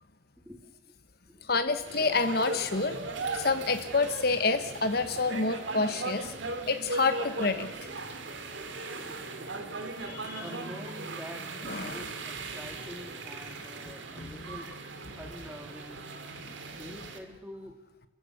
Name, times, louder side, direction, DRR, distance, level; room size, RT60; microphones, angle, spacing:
voice 1, 0.5-0.9 8.7-14.7 15.2-16.0 16.7-17.8, equal, 5° right, 4 dB, 2.7 m, -47 dB
voice 2, 1.5-3.1 3.3-6.3 6.7-7.7 10.1-10.5 11.6-12.0 14.2-14.4, left 3 dB, 50° left, 10 dB, 1.1 m, -28 dB
sound 1, 1.9-17.2, right 3 dB, 75° right, 2.4 m, -38 dB
29.5 x 15.5 x 6.6 m, 1.1 s
head